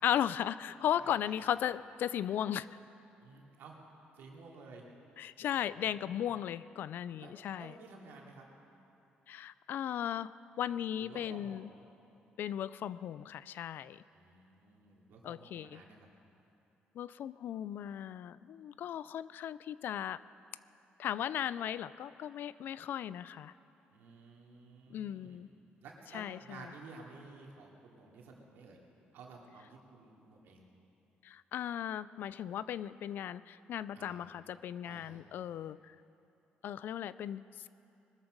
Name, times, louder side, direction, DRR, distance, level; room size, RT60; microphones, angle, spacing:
voice 1, 0.0-2.7 5.2-7.7 9.3-11.7 12.4-14.0 15.2-15.8 16.9-20.2 21.0-23.5 24.9-25.5 26.1-26.7 31.2-36.0 36.6-37.7, left 10 dB, 65° left, 17 dB, 0.4 m, -36 dB
voice 2, 1.0-1.6 3.2-3.8 4.1-4.9 5.5-6.4 7.2-8.5 11.0-11.8 14.1-16.1 23.9-25.4 25.8-28.8 29.1-30.7 33.9-34.3 34.8-35.2, right 3 dB, 80° right, -1 dB, 2.7 m, -53 dB
21.0 x 13.0 x 5.2 m, 2.8 s
cardioid pair, 105°, 4 cm